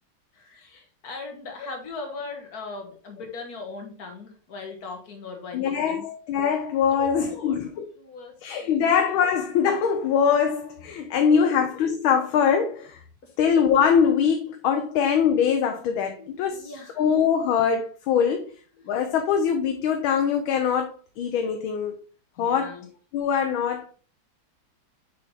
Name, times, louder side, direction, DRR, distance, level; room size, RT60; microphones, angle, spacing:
voice 1, 0.4-6.1 6.9-7.6 8.0-8.3 8.6-8.8 11.2-11.5 13.2-13.3 16.2-17.0 22.4-22.9, left 3 dB, 50° left, 2.0 m, -39 dB
voice 2, 5.5-7.9 8.4-13.0 13.4-16.7 17.0-18.5 18.9-22.0 22.4-22.8 23.1-23.9, left 7 dB, 85° left, 1.6 m, -23 dB
6.6 x 5.6 x 3.4 m
omnidirectional pair, 2.2 m